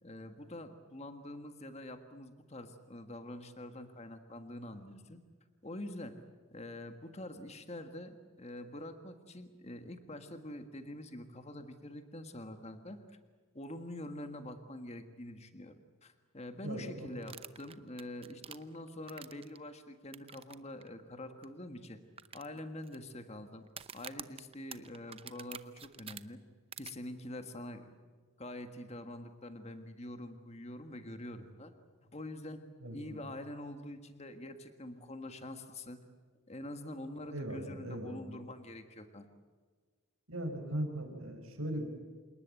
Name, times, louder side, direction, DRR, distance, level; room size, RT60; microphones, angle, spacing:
voice 1, 0.0-5.2 5.6-6.2 6.5-13.2 13.5-15.7 16.0-22.0 22.3-23.6 23.9-26.4 26.8-28.0 28.4-31.7 32.0-32.6 32.9-36.0 36.5-39.3, left 1 dB, 30° left, 8 dB, 1.6 m, -45 dB
voice 2, 16.6-17.1 32.8-33.2 37.3-38.4 40.3-41.9, right 1 dB, 75° right, 5 dB, 5.1 m, -39 dB
sound 1, 17.2-19.6 20.1-20.5 20.8-20.9 21.4-21.5 22.2-23.0 23.7-26.2 26.7-26.9, right 8 dB, 25° right, 0.7 m, -47 dB
28.0 x 19.0 x 9.0 m, 1.5 s
head